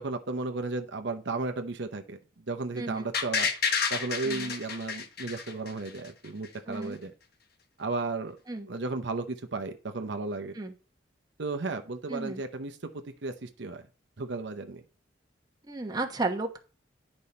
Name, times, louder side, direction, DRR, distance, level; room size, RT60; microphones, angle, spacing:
voice 1, 0.0-2.2 2.5-3.5 3.9-7.1 7.8-8.4 8.7-10.5 11.4-12.8 13.2-13.8 14.2-14.8, right 3 dB, 60° right, 6 dB, 0.7 m, -34 dB
voice 2, 2.8-3.1 4.2-4.5 6.7-7.0 8.5-8.7 10.5-10.7 12.1-12.4 15.7-16.6, right 2 dB, 20° right, 2 dB, 1.0 m, -33 dB
sound 1, 3.1-6.1 6.4-6.5, left 6 dB, 55° left, 1.1 m, -30 dB
10.5 x 5.3 x 4.2 m, 0.37 s
head